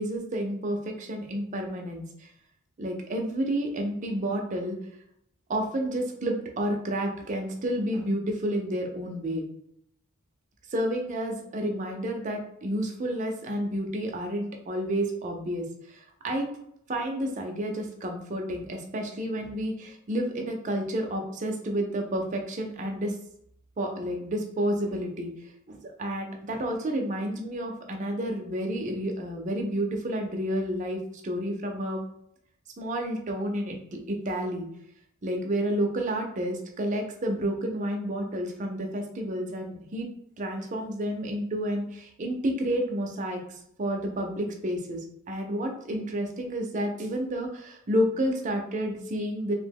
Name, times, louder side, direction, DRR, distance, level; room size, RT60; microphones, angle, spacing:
voice 1, 0.0-2.3 2.8-4.8 5.5-9.4 10.7-16.5 16.9-23.2 23.8-25.3 25.7-32.0 32.8-33.8 34.1-34.7 35.2-40.1 40.4-43.4 43.8-45.0 45.3-49.5, right 1 dB, 35° right, 2 dB, 0.4 m, -30 dB
2.8 x 2.1 x 3.4 m, 0.73 s
head